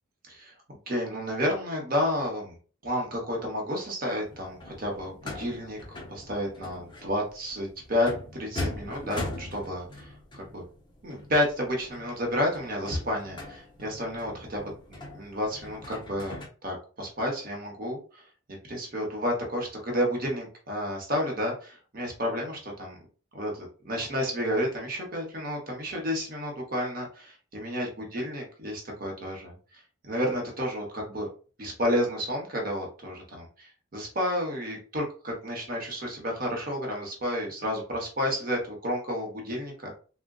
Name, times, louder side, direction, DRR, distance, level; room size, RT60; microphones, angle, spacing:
voice 1, 0.3-2.6 2.8-5.8 6.1-10.6 11.0-18.2 18.7-23.0 23.3-31.3 31.6-39.9, equal, 45° right, 0 dB, 0.8 m, -31 dB
sound 1, 4.2-16.5, left 2 dB, 20° left, 0.6 m, -41 dB
3.6 x 2.1 x 2.2 m, 0.37 s
head